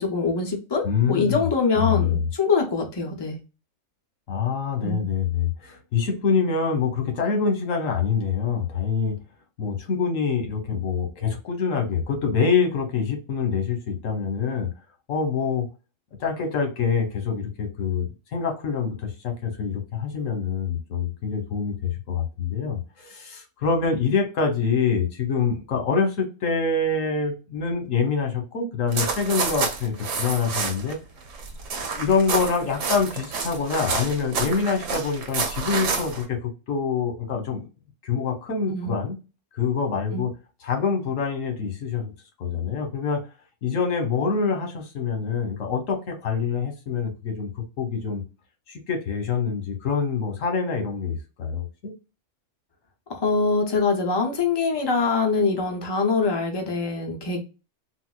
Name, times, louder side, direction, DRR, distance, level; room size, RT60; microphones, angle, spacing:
voice 1, 0.0-3.4 4.8-5.0 38.7-39.0 40.1-40.3 53.1-57.4, left 4 dB, 25° left, 0.6 m, -24 dB
voice 2, 0.8-1.5 1.7-2.3 4.3-9.2 9.6-14.7 15.1-15.7 16.2-31.0 31.8-37.7 38.0-39.2 39.5-40.3 40.6-42.1 42.4-43.2 43.6-48.2 48.7-51.9, left 5 dB, 85° left, 1.3 m, -25 dB
sound 1, 28.9-30.9 31.2-36.2, right 4 dB, 75° right, 1.1 m, -29 dB
4.2 x 2.0 x 2.3 m
omnidirectional pair, 1.3 m